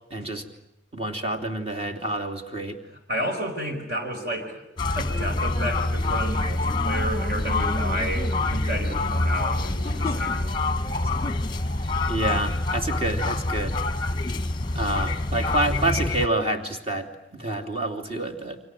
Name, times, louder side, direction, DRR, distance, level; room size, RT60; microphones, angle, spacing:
voice 1, 0.1-0.5 0.9-2.8 11.8-13.8 14.7-18.6, right 1 dB, 30° right, 3 dB, 2.9 m, -28 dB
voice 2, 2.9-4.6 4.9-11.1, right 1 dB, 55° right, 4 dB, 4.8 m, -32 dB
sound 1, 4.8-16.3, left 2 dB, 25° left, 1.0 m, -26 dB
29.5 x 24.5 x 7.7 m, 0.86 s
head